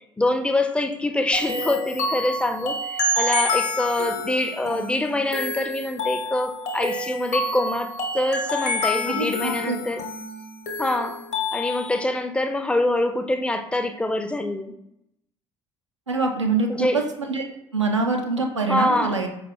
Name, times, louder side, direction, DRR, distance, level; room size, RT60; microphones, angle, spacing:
voice 1, 0.2-7.9 8.1-10.0 10.8-11.2 11.5-14.7 16.7-17.0 18.7-19.3, left 1 dB, 5° left, 6 dB, 0.4 m, -25 dB
sound 1, 1.3-12.0, left 2 dB, 50° left, 0.9 m, -28 dB
voice 2, 9.1-9.8 16.1-16.9 17.3-17.5 17.7-19.3, right 3 dB, 90° right, 2 dB, 0.4 m, -24 dB
4.7 x 2.2 x 3.4 m, 0.79 s
figure-of-eight pair, 55°, 15 cm